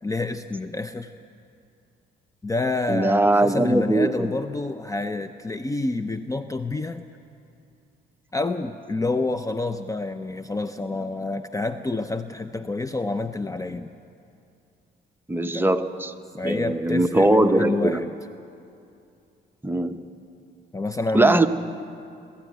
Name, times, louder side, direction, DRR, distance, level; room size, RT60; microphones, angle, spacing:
voice 1, 0.0-1.1 2.4-7.0 8.3-13.9 15.5-15.7 16.4-18.1 20.7-21.4, left 3 dB, 15° left, 9 dB, 0.6 m, -28 dB
voice 2, 2.9-4.3 15.3-16.1 16.4-18.0 19.6-20.0 21.1-21.5, right 2 dB, 10° right, 7 dB, 1.0 m, -20 dB
22.0 x 13.0 x 9.4 m, 2.5 s
cardioid pair, 90°, 20 cm